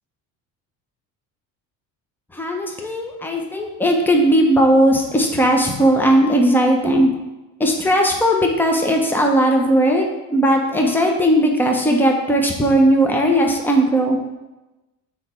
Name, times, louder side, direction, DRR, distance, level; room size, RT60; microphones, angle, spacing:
voice 1, 2.3-7.1 7.6-10.1 10.3-14.2, right 1 dB, 5° left, 1 dB, 1.0 m, -17 dB
6.3 x 4.7 x 4.4 m, 1.1 s
cardioid pair, 100°, 36 cm